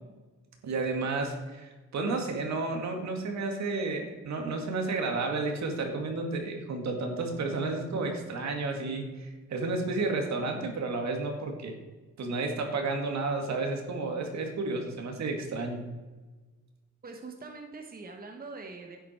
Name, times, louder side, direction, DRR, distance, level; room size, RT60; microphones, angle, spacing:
voice 1, 0.6-11.7 12.2-15.8, right 3 dB, 65° right, 3 dB, 2.2 m, -31 dB
voice 2, 17.0-19.0, right 3 dB, 30° right, 3 dB, 1.3 m, -43 dB
11.5 x 8.3 x 4.5 m, 1.3 s
cardioid pair, 90°, 30 cm